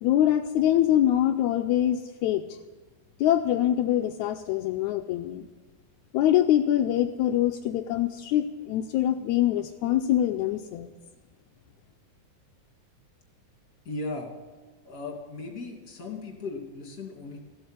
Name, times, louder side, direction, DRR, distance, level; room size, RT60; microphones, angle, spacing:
voice 1, 0.0-2.6 3.2-5.5 6.1-10.9, left 12 dB, 80° left, 5 dB, 1.8 m, -24 dB
voice 2, 13.8-14.3 14.8-17.4, left 3 dB, 30° left, 1 dB, 2.7 m, -37 dB
15.0 x 7.9 x 9.1 m, 1.3 s
omnidirectional pair, 3.8 m